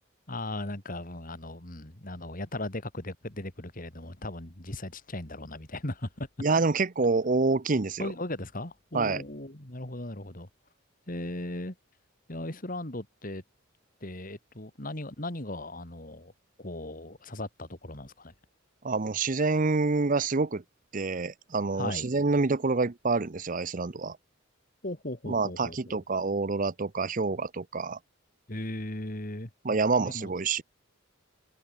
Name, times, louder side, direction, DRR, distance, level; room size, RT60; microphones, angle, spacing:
voice 1, 0.3-6.3 8.0-10.5 11.1-11.7 12.3-13.4 14.0-16.3 16.6-18.3 21.7-22.1 24.8-26.0 28.5-29.5 30.0-30.3, left 1 dB, 40° left, 3.1 m, -37 dB
voice 2, 6.4-8.1 8.9-9.2 18.8-20.6 20.9-24.2 25.3-28.0 29.6-30.6, right 3 dB, 40° right, 0.7 m, -27 dB
head